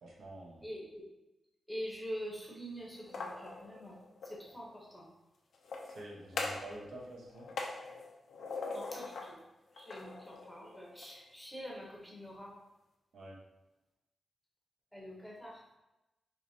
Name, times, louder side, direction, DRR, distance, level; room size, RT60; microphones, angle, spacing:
voice 1, 0.0-0.7 5.9-7.5 13.1-13.4, right 1 dB, 75° right, -2 dB, 0.9 m, -48 dB
voice 2, 0.6-1.1 1.7-4.0 4.2-5.1 8.7-9.4 9.7-12.5 14.9-15.6, equal, ahead, -4 dB, 0.8 m, -45 dB
sound 1, 2.9-4.4 5.5-6.8 7.0-9.4 9.7-11.1, left 3 dB, 80° left, 0.6 m, -42 dB
4.7 x 3.1 x 2.7 m, 0.97 s
wide cardioid pair, 175°, 0 cm